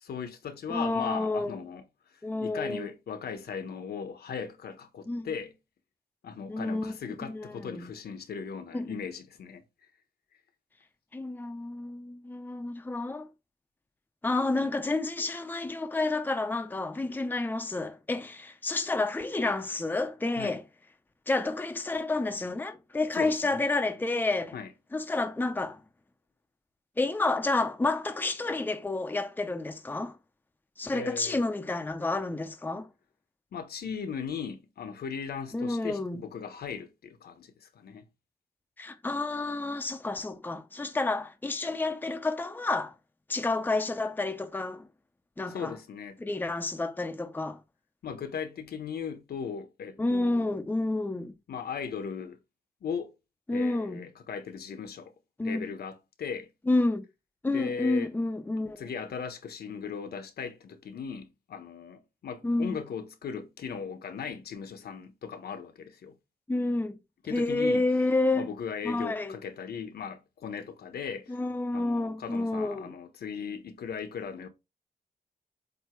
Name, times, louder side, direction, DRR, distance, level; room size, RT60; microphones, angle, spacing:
voice 1, 0.0-1.8 2.4-5.5 6.2-9.6 20.4-20.6 23.2-23.6 24.5-24.7 30.9-31.4 33.5-38.1 45.5-46.2 48.0-50.5 51.5-52.4 52.8-53.1 53.5-55.1 55.4-56.5 57.5-58.1 58.8-66.2 67.3-67.8 68.3-71.4 71.7-74.5, left 6 dB, 75° left, 1.1 m, -38 dB
voice 2, 0.7-1.6 2.2-2.9 5.1-5.3 6.5-7.9 8.7-8.9 11.1-13.3 14.2-20.6 21.3-24.6 24.9-25.8 27.0-30.2 30.8-32.9 35.5-36.2 38.8-42.9 43.3-44.9 45.4-45.7 46.2-47.6 50.0-51.3 53.5-54.1 55.4-55.7 56.7-57.1 57.4-58.8 62.4-62.8 66.5-67.0 67.3-68.5 68.8-69.4 71.3-72.9, left 2 dB, 10° left, 0.6 m, -30 dB
8.0 x 2.8 x 4.5 m
wide cardioid pair, 135°, 16 cm